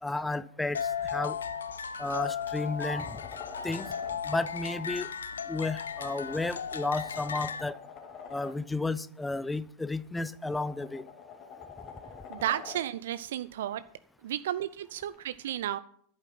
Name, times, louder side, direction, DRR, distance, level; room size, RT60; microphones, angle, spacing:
voice 1, 0.0-1.4 2.0-3.2 3.6-3.9 4.2-5.1 5.5-7.8 8.3-11.1, left 2 dB, 5° left, 0.5 m, -32 dB
sound 1, 0.7-7.6, left 7 dB, 70° left, 0.6 m, -36 dB
sound 2, 1.9-4.2 5.8-8.6 10.0-12.9 15.1-15.2, left 6 dB, 35° left, 2.4 m, -47 dB
voice 2, 12.3-13.8 14.2-15.8, right 12 dB, 60° right, 0.4 m, -33 dB
11.0 x 8.7 x 5.9 m
figure-of-eight pair, 90°, 0 cm